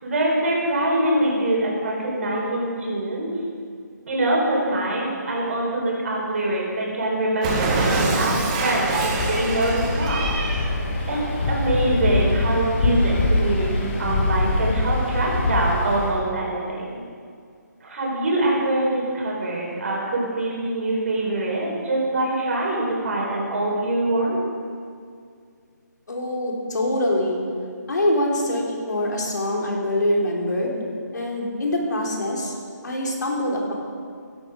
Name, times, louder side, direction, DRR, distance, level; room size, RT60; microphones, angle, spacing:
voice 1, 0.0-3.3 4.1-10.4 11.1-11.2 11.5-17.0 17.8-24.4, right 1 dB, 45° right, -3 dB, 4.7 m, -24 dB
Cat, 7.4-10.7, right 3 dB, 25° right, 1.8 m, -25 dB
Waves surf, 8.9-16.2, left 2 dB, 40° left, 2.3 m, -24 dB
voice 2, 26.1-27.4 27.9-30.8 31.1-32.5 32.8-33.7, left 1 dB, 70° left, -1 dB, 3.6 m, -24 dB
16.0 x 12.0 x 5.2 m, 2.2 s
figure-of-eight pair, 155°, 10 cm